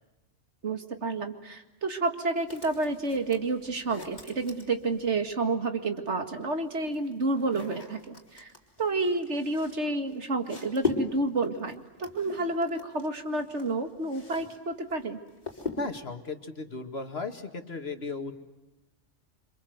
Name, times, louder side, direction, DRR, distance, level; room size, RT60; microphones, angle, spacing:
voice 1, 0.6-8.5 8.8-15.2, right 3 dB, 70° right, 7 dB, 2.4 m, -30 dB
sound 1, 2.5-5.3 6.3-14.6 14.9-16.1, left 5 dB, 35° left, 4.6 m, -39 dB
voice 2, 15.8-18.3, left 3 dB, 60° left, 7 dB, 2.3 m, -36 dB
27.5 x 26.5 x 8.0 m, 1.0 s
omnidirectional pair, 1.2 m